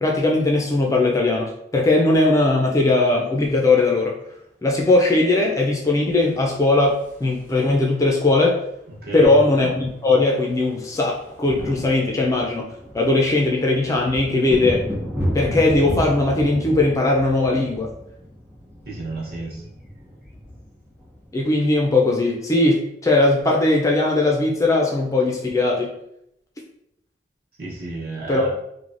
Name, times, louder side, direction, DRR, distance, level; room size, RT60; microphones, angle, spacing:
voice 1, 0.0-4.1 4.6-8.6 9.1-12.7 12.9-14.8 15.3-17.9 21.3-25.9 28.3-28.5, left 2 dB, 20° left, -1 dB, 0.3 m, -19 dB
sound 1, 6.3-7.8 9.1-9.2 9.4-9.6 9.9-22.0, equal, 10° right, 0.8 m, -33 dB
voice 2, 9.0-9.4 18.8-19.6 27.6-28.5, right 2 dB, 55° right, -4 dB, 0.9 m, -32 dB
3.1 x 2.1 x 2.4 m, 0.76 s
head